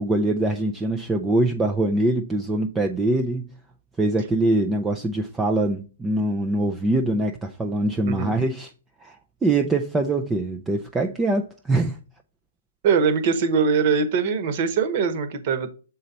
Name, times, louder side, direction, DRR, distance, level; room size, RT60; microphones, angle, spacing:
voice 1, 0.0-3.5 4.0-8.7 9.0-12.0, right 2 dB, 10° right, 0.4 m, -23 dB
voice 2, 12.8-15.7, right 5 dB, 40° right, 1.2 m, -22 dB
6.5 x 4.0 x 4.1 m
hypercardioid pair, 155°, 0 cm